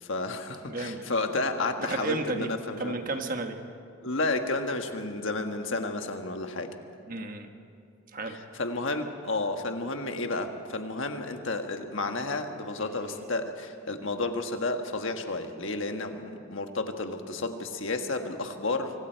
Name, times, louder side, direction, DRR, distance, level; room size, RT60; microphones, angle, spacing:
voice 1, 0.0-2.9 4.0-6.7 8.3-18.9, left 2 dB, 60° left, 5 dB, 1.5 m, -31 dB
voice 2, 0.7-1.1 1.8-2.5 2.8-3.6 7.1-7.5 8.1-8.4, right 3 dB, 40° right, 5 dB, 1.3 m, -33 dB
25.5 x 24.5 x 4.6 m, 2.5 s
head